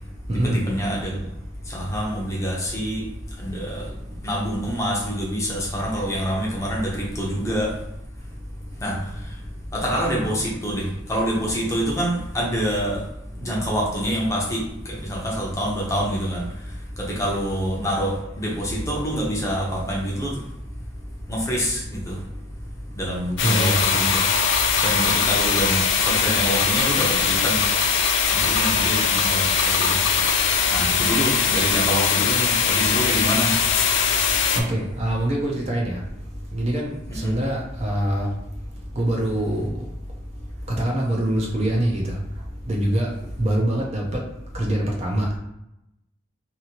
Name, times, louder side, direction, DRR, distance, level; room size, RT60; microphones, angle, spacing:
voice 1, 0.4-1.2 1.7-3.0 3.4-3.9 4.2-7.7 8.8-9.3 9.7-13.0 13.4-16.4 17.0-20.4 21.3-22.2 23.0-24.2 24.8-27.7 28.3-30.2 30.7-33.6 33.9-34.0 37.1-37.3, equal, 15° left, -4 dB, 0.6 m, -26 dB
sound 1, 23.4-34.6, left 6 dB, 60° left, 0.4 m, -21 dB
voice 2, 23.4-23.8 34.6-36.0 36.5-38.3 39.0-39.7 40.7-42.2 42.7-43.1 43.4-44.2 44.5-45.3, right 1 dB, 30° right, -2 dB, 0.5 m, -24 dB
2.7 x 2.6 x 2.9 m, 0.85 s
head